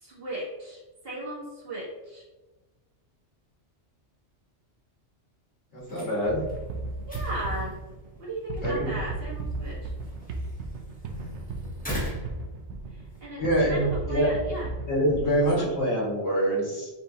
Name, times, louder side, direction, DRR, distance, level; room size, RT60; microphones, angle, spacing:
voice 1, 0.0-2.2 7.1-7.7 8.2-9.9 13.2-13.4 13.7-14.7, right 1 dB, 55° right, -6 dB, 1.6 m, -36 dB
voice 2, 5.7-6.4 8.6-8.9 13.4-14.3 14.9-16.9, right 1 dB, 70° left, -5 dB, 1.9 m, -25 dB
sound 1, 5.8-13.3, equal, 10° left, 1.0 m, -42 dB
sound 2, 6.2-15.8, right 2 dB, 80° right, 0.9 m, -35 dB
5.9 x 2.6 x 2.8 m, 1.1 s
omnidirectional pair, 1.2 m